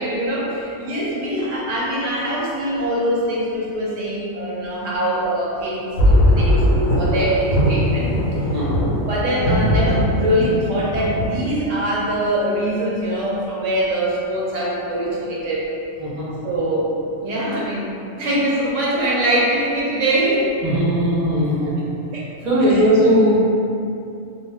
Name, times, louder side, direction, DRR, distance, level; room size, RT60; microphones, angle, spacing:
voice 1, 0.0-8.1 9.1-15.7 16.4-17.9 18.2-20.6 22.1-22.3 22.7-22.8, right 1 dB, 75° right, -5 dB, 0.9 m, -23 dB
sound 1, 6.0-11.3, equal, 75° left, 1.0 m, -19 dB
voice 2, 8.4-8.7 16.0-16.3 20.6-21.8 22.4-23.4, equal, 40° right, -8 dB, 0.5 m, -18 dB
2.3 x 2.2 x 3.3 m, 2.7 s
omnidirectional pair, 1.4 m